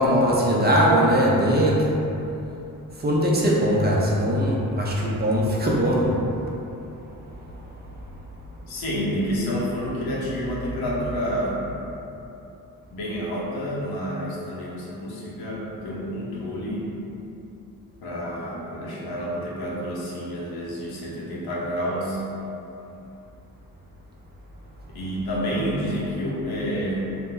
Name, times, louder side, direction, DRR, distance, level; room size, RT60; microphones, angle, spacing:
voice 1, 0.0-1.8 3.0-6.2, equal, 25° right, -4 dB, 0.5 m, -20 dB
voice 2, 8.7-11.6 12.9-16.9 18.0-22.2 24.9-27.1, equal, 85° left, -5 dB, 0.8 m, -29 dB
2.6 x 2.2 x 3.7 m, 2.8 s
cardioid pair, 85°, 37 cm